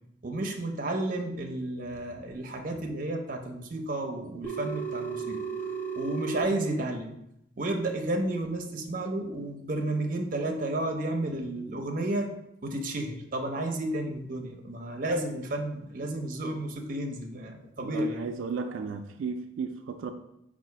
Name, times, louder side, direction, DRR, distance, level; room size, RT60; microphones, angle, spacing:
voice 1, 0.2-5.4 6.0-7.1 7.6-12.3 12.6-18.3, right 1 dB, 45° right, 3 dB, 0.6 m, -32 dB
Telephone, 4.4-6.4, right 6 dB, 10° left, 0.5 m, -34 dB
voice 2, 17.8-20.1, right 5 dB, 85° right, 6 dB, 0.3 m, -34 dB
4.7 x 2.4 x 4.5 m, 0.79 s
head